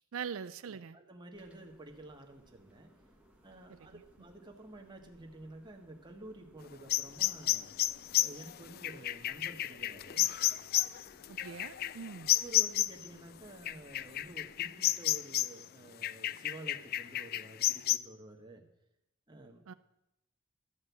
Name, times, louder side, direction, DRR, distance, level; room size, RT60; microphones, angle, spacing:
voice 1, 0.1-1.0 11.3-12.3 19.7-19.8, right 6 dB, 90° right, 13 dB, 0.4 m, -42 dB
voice 2, 0.7-2.9 3.4-7.7 8.2-10.3 11.8-18.6 19.3-19.6, right 1 dB, 20° right, 2 dB, 1.5 m, -51 dB
sound 1, 1.3-14.7, right 1 dB, 5° right, 1.5 m, -64 dB
sound 2, 6.9-13.1 13.7-15.6 16.0-18.0, left 14 dB, 50° left, 0.3 m, -31 dB
13.0 x 5.5 x 8.3 m, 0.88 s
head